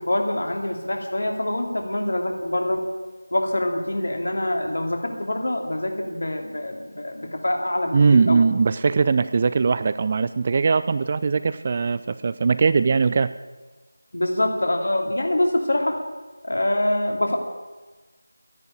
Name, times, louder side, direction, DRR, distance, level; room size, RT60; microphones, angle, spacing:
voice 1, 0.0-2.9 3.3-8.4 14.1-16.0 16.4-17.4, left 1 dB, 55° left, 3 dB, 2.8 m, -25 dB
voice 2, 7.9-13.3, right 4 dB, 25° right, 13 dB, 0.4 m, -20 dB
12.5 x 10.5 x 9.3 m, 1.3 s
figure-of-eight pair, 165°, 0 cm